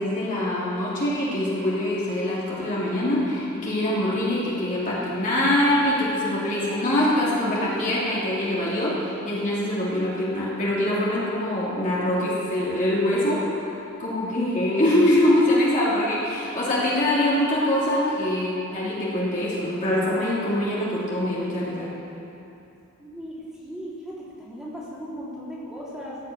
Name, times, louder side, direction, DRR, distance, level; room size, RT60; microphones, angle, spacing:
voice 1, 0.0-13.7 14.0-21.9, left 1 dB, 35° left, -7 dB, 3.0 m, -24 dB
voice 2, 23.0-23.4 23.6-26.2, equal, ahead, -9 dB, 3.5 m, -37 dB
16.0 x 6.7 x 8.8 m, 2.8 s
head